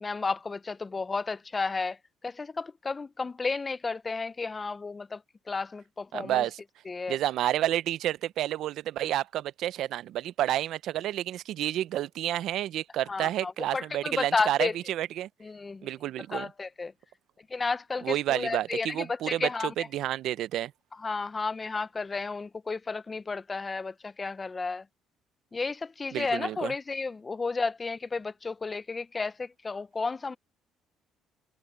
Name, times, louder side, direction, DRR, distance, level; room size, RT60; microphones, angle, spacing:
voice 1, 0.0-5.2 5.5-6.5 6.9-7.2 13.1-14.8 15.4-15.9 16.3-16.9 17.5-19.9 21.0-24.9 25.5-30.4, left 4 dB, 25° left, 0.6 m, -32 dB
voice 2, 6.1-6.6 7.1-15.3 15.8-16.5 18.0-19.5 19.9-20.7 26.1-26.7, right 13 dB, 70° right, 0.7 m, -30 dB
cardioid pair, 85°, 0 cm